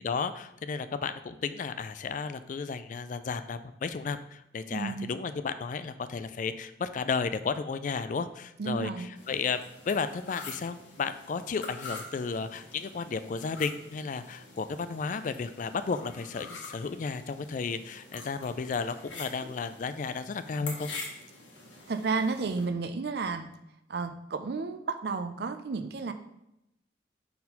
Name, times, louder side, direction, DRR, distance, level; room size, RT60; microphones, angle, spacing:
voice 1, 0.0-9.6 9.9-20.9, left 5 dB, 45° left, 12 dB, 0.3 m, -33 dB
voice 2, 4.7-5.1 8.6-9.1 21.9-23.5 23.9-26.1, right 4 dB, 60° right, 9 dB, 0.5 m, -32 dB
sound 1, 9.2-22.7, left 3 dB, 85° left, 1.6 m, -46 dB
4.3 x 4.2 x 5.3 m, 0.84 s
head